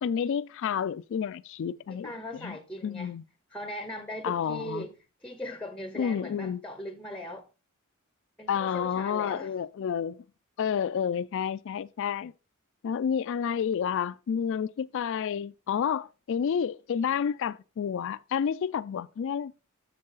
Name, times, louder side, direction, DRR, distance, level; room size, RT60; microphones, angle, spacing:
voice 1, 0.0-2.6 2.8-3.2 4.2-4.9 6.0-6.6 8.5-10.2 10.6-12.3 12.8-19.5, left 7 dB, 65° left, 0.3 m, -30 dB
voice 2, 1.9-3.2 3.5-4.9 5.2-7.5 8.4-9.5, equal, 5° left, 0.7 m, -39 dB
7.5 x 6.8 x 4.0 m
head